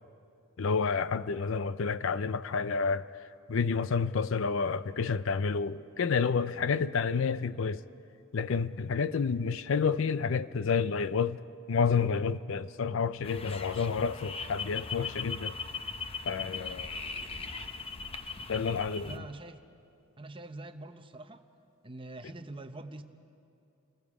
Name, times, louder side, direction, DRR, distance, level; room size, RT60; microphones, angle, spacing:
voice 1, 0.6-7.8 8.3-11.4 11.7-15.5 16.3-16.9 18.5-19.3, left 5 dB, 60° left, 0.4 m, -29 dB
sound 1, 13.2-19.2, left 4 dB, 25° left, 0.8 m, -39 dB
voice 2, 19.0-19.6 20.2-21.4 21.8-23.0, right 2 dB, 25° right, 0.8 m, -44 dB
30.0 x 20.5 x 4.9 m
head